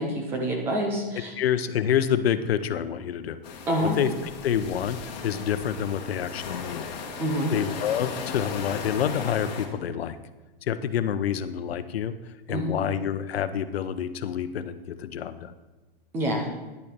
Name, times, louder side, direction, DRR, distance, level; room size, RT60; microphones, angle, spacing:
voice 1, 0.0-1.3 3.7-4.0 7.2-7.5 12.5-12.8 16.1-16.5, equal, 5° right, 2 dB, 0.5 m, -27 dB
voice 2, 1.4-3.4 3.8-6.9 7.5-10.2 10.6-15.5, left 9 dB, 90° left, 12 dB, 0.8 m, -28 dB
sound 1, 3.4-9.7, left 5 dB, 45° left, 1.6 m, -37 dB
10.5 x 7.0 x 5.1 m, 1.2 s
supercardioid pair, 175°, 30 cm